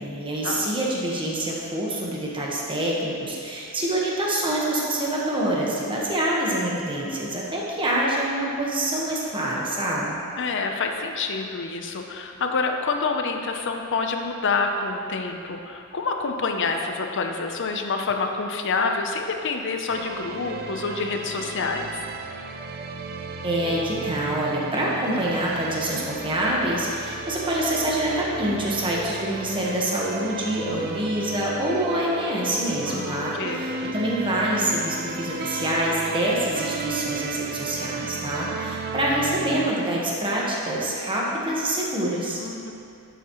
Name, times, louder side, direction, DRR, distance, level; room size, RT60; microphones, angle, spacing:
voice 1, 0.0-10.2 23.4-42.4, right 1 dB, 25° right, -4 dB, 1.3 m, -26 dB
voice 2, 10.4-21.9 32.9-33.7 42.4-42.7, left 4 dB, 55° left, 4 dB, 0.7 m, -27 dB
sound 1, 19.9-39.7, right 3 dB, 45° right, 0.4 m, -34 dB
11.0 x 7.1 x 3.1 m, 2.5 s
head